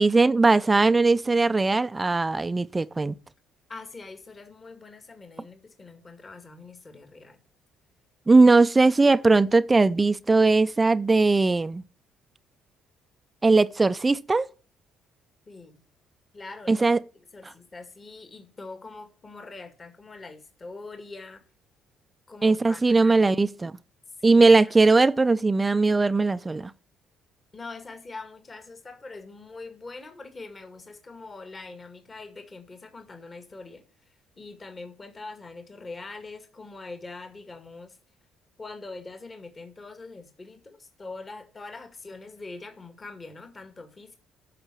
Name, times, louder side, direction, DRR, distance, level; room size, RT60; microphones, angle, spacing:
voice 1, 0.0-3.1 8.3-11.8 13.4-14.5 16.7-17.0 22.4-23.7 24.2-26.7, right 3 dB, 25° right, 0.5 m, -19 dB
voice 2, 3.7-7.4 15.5-15.8 16.3-16.8 17.3-21.4 22.3-23.4 24.2-24.5 27.5-38.0 38.6-44.2, left 3 dB, 35° left, 2.0 m, -43 dB
8.9 x 5.9 x 7.5 m
supercardioid pair, 65°, 0 cm